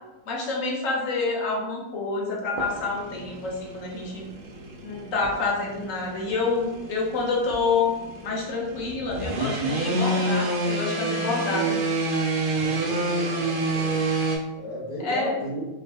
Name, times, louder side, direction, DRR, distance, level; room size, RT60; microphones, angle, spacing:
voice 1, 0.3-4.3 4.8-7.9 8.2-11.8 15.0-15.3, left 3 dB, 70° left, -1 dB, 1.0 m, -27 dB
sound 1, 2.5-14.4, right 2 dB, 70° right, 0.5 m, -28 dB
voice 2, 12.5-14.0 14.5-15.6, equal, 35° left, -5 dB, 0.6 m, -35 dB
2.8 x 2.1 x 3.3 m, 1.1 s
omnidirectional pair, 1.5 m